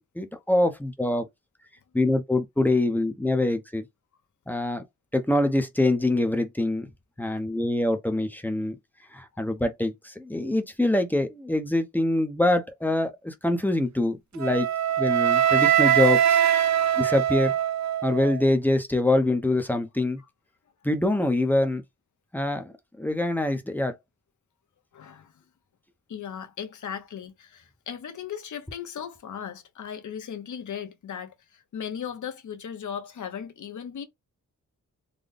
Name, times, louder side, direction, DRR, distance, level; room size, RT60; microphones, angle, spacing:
voice 1, 0.2-1.3 1.9-3.8 4.5-4.8 5.1-6.9 7.2-8.7 9.1-14.7 15.0-16.4 17.0-17.5 18.0-20.2 20.8-21.8 22.3-22.7 23.0-23.9, left 1 dB, 5° left, 0.6 m, -24 dB
Wind instrument woodwind instrument, 14.4-18.5, right 10 dB, 60° right, 0.5 m, -22 dB
voice 2, 24.9-25.4 26.1-34.1, left 8 dB, 70° left, 0.9 m, -37 dB
3.9 x 2.2 x 3.4 m
wide cardioid pair, 155°, 31 cm